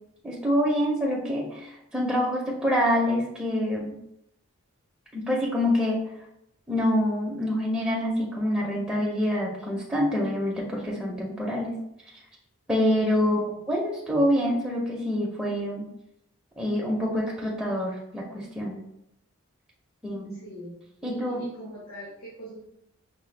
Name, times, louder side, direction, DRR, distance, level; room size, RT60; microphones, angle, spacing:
voice 1, 0.2-3.9 5.1-6.0 6.7-11.7 12.7-15.8 16.6-18.8 20.0-20.4 21.0-21.5, equal, 5° right, -4 dB, 0.5 m, -26 dB
voice 2, 13.2-13.7 20.3-22.6, right 1 dB, 85° left, -8 dB, 1.2 m, -42 dB
4.9 x 2.1 x 3.2 m, 0.78 s
head